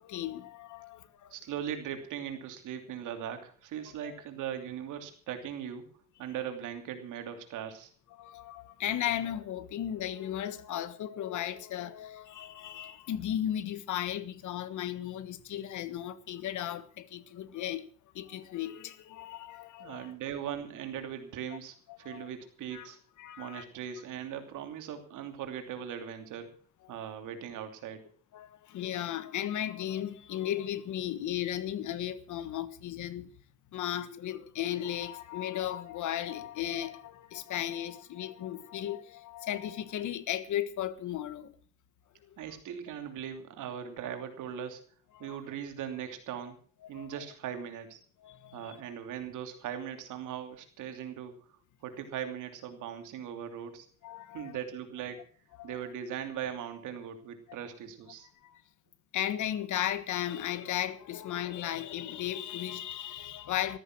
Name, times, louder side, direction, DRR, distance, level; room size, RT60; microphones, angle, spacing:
voice 1, 0.0-1.3 4.0-4.2 8.1-17.8 18.1-20.1 21.5-21.6 21.9-22.3 22.7-22.9 23.2-23.7 28.3-33.3 33.7-41.5 45.1-45.4 46.9-47.2 48.2-48.8 54.0-54.6 55.6-55.8 58.4-58.6 59.1-63.8, left 11 dB, 75° left, 1.5 m, -35 dB
voice 2, 1.3-5.9 6.2-7.9 19.8-23.0 23.4-26.5 26.9-28.0 42.4-44.8 45.2-46.6 46.9-48.0 48.5-51.5 51.8-53.9 54.3-55.2 55.6-58.3, right 9 dB, 85° right, 2.9 m, -39 dB
14.5 x 13.5 x 6.1 m
cardioid pair, 90°, 30 cm